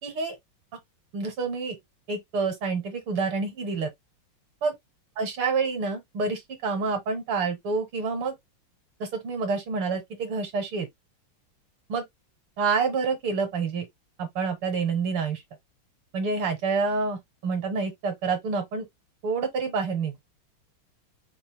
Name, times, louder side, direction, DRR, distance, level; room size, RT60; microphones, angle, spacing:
voice 1, 0.0-0.4 1.1-1.8 2.1-3.9 4.6-4.7 5.2-8.4 9.0-10.9 11.9-12.0 12.6-13.9 14.2-15.4 16.1-18.9 19.2-20.1, right 4 dB, 75° right, 2.3 m, -28 dB
5.4 x 2.5 x 3.5 m
omnidirectional pair, 2.3 m